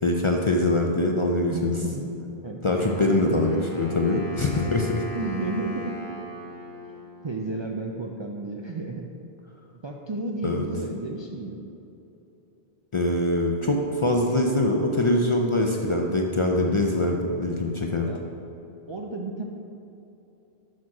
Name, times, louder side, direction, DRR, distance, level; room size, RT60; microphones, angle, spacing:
voice 1, 0.0-1.7 2.6-5.0 10.4-10.6 12.9-18.1, left 2 dB, 40° left, 1 dB, 0.4 m, -23 dB
voice 2, 1.5-2.2 2.4-2.6 3.2-3.3 5.2-5.9 6.9-9.0 9.8-11.6 16.6-16.9 18.0-18.2 18.9-19.4, right 2 dB, 45° right, 0 dB, 0.3 m, -32 dB
Wind instrument woodwind instrument, 2.7-7.7, right 1 dB, 20° left, 1.2 m, -39 dB
6.4 x 6.1 x 4.7 m, 3.0 s
omnidirectional pair, 1.0 m